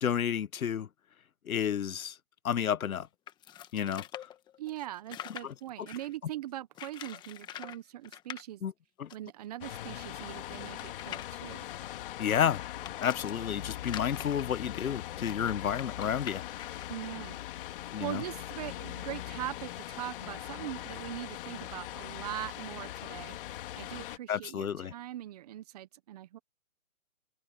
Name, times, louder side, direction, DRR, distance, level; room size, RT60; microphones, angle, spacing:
voice 1, 0.0-0.9 1.5-2.2 2.4-3.1 3.7-4.0 5.4-5.5 8.6-8.7 9.0-9.1 12.2-12.6 13.0-16.4 17.9-18.2 24.3-24.9, left 8 dB, 85° left, 0.9 m, -31 dB
sound 1, 3.3-6.2 6.7-7.8 8.0-8.4 9.1-9.2 9.4-9.5 10.0-13.3 13.8-17.1, left 11 dB, 10° left, 1.2 m, -45 dB
voice 2, 4.6-8.6 9.1-11.7 16.9-17.4 17.7-23.4 23.8-26.4, right 13 dB, 30° right, 1.0 m, -41 dB
sound 2, 9.6-24.2, left 13 dB, 40° left, 2.7 m, -41 dB
hypercardioid pair, 150°, 41 cm